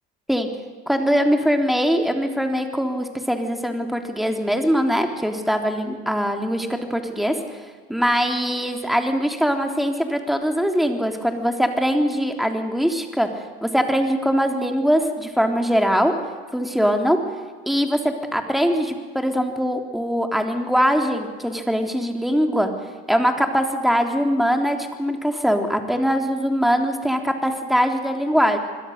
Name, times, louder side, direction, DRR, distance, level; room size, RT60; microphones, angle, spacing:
voice 1, 0.9-7.4 7.9-13.3 13.6-16.1 16.5-17.2 17.6-22.7 23.1-28.6, equal, ahead, 4 dB, 3.4 m, -22 dB
28.5 x 21.0 x 6.7 m, 1.5 s
hypercardioid pair, 65°, 30 cm